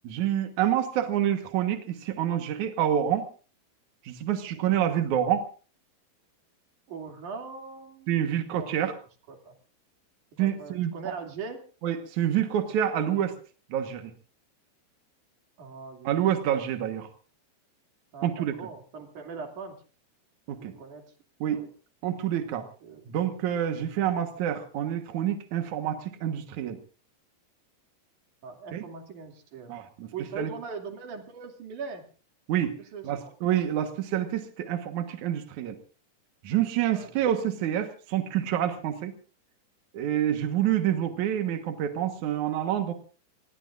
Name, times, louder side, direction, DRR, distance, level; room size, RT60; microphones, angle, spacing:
voice 1, 0.0-3.3 4.0-5.5 8.1-9.0 10.4-10.9 11.8-13.3 13.7-14.1 16.0-17.1 18.2-18.5 20.5-20.7 21.4-21.6 22.0-22.7 23.1-26.8 28.7-28.8 29.7-30.1 30.4-30.5 32.5-32.8 33.0-35.8 36.4-39.1 39.9-42.9, right 10 dB, 70° right, 6 dB, 1.8 m, -27 dB
voice 2, 6.9-9.0 9.3-9.6 10.4-11.6 15.6-16.2 18.1-19.8 20.6-21.0 21.6-21.7 22.8-23.1 28.4-29.7 30.1-32.0 32.9-33.3 36.9-37.2, right 5 dB, 50° right, 3 dB, 3.5 m, -41 dB
27.5 x 20.5 x 2.5 m, 0.38 s
omnidirectional pair, 5.4 m